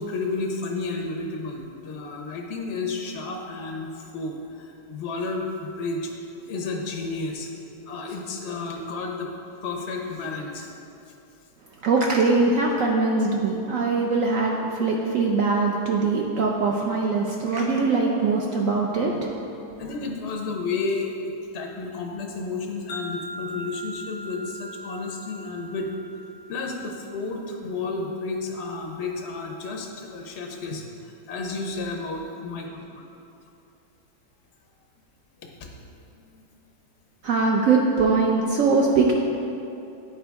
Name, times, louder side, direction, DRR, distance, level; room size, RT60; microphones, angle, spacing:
voice 1, 0.0-6.1 6.4-7.5 7.9-9.3 9.6-10.7 19.8-25.9 26.5-33.0 35.6-35.7 36.2-36.4, left 3 dB, 70° left, 1 dB, 0.6 m, -32 dB
voice 2, 11.8-19.3 37.2-39.1, right 4 dB, 70° right, -1 dB, 0.8 m, -22 dB
Wind chime, 22.9-27.2, equal, 90° left, 1.4 m, -40 dB
9.4 x 4.4 x 3.4 m, 2.8 s
omnidirectional pair, 1.9 m